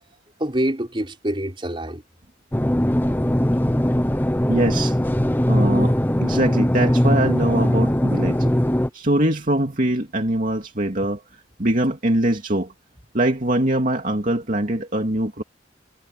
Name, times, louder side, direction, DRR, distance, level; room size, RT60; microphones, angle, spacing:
voice 1, 0.4-2.0 8.4-8.8, right 1 dB, 25° right, 4.1 m, -26 dB
sound 1, 2.5-8.9, equal, 10° left, 0.9 m, -20 dB
voice 2, 4.5-5.0 5.5-6.0 6.2-8.5 8.9-11.2 11.6-12.7 13.1-15.4, right 1 dB, 40° right, 2.6 m, -22 dB
head